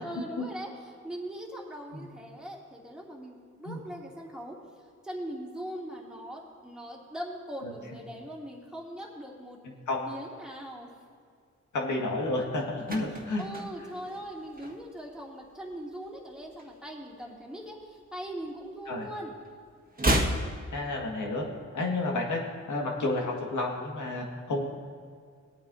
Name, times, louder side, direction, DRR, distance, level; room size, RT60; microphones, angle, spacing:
voice 1, 0.0-4.6 5.0-9.6 10.0-10.9 13.4-19.3, right 1 dB, 5° right, -3 dB, 2.6 m, -40 dB
voice 2, 11.7-13.4 18.9-19.1 20.7-21.4 21.7-24.7, left 2 dB, 80° left, 0 dB, 1.9 m, -31 dB
sound 1, 12.5-15.2 15.4-15.7 16.0-17.5 17.8-19.1 19.4-21.5 21.7-21.8, right 1 dB, 30° right, 1.6 m, -33 dB
18.0 x 9.3 x 2.7 m, 2.1 s
cardioid pair, 70°, 30 cm